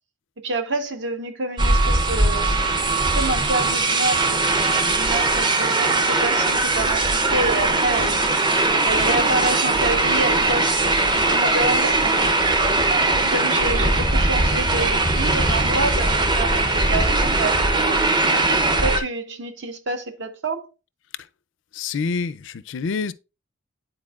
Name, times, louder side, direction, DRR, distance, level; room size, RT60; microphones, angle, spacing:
voice 1, 0.4-2.5 3.1-8.3 8.9-12.5 12.8-18.1 18.8-20.7, right 2 dB, 60° right, 0.9 m, -28 dB
sound 1, 1.6-19.0, right 2 dB, 20° right, 0.6 m, -20 dB
voice 2, 21.7-23.1, left 4 dB, 65° left, 0.4 m, -27 dB
9.8 x 4.3 x 2.3 m
head